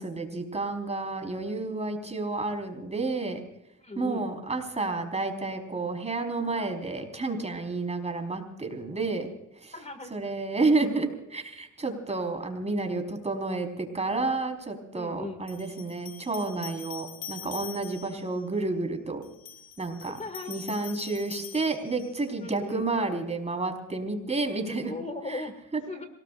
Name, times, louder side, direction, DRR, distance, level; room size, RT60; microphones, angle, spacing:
voice 1, 0.0-3.4 4.0-9.3 9.6-9.7 10.1-19.2 19.8-20.2 20.5-24.9 25.3-25.4 25.7-25.8, right 3 dB, 20° right, 5 dB, 4.4 m, -30 dB
voice 2, 3.8-4.3 9.7-10.1 14.9-15.4 20.2-20.5 22.4-22.9 24.8-25.5 25.9-26.1, left 2 dB, 25° left, 8 dB, 2.1 m, -37 dB
sound 1, 14.2-14.3 15.5-18.3 19.2-22.3, left 8 dB, 65° left, 2.2 m, -44 dB
27.5 x 18.5 x 2.5 m, 0.84 s
cardioid pair, 90°, 30 cm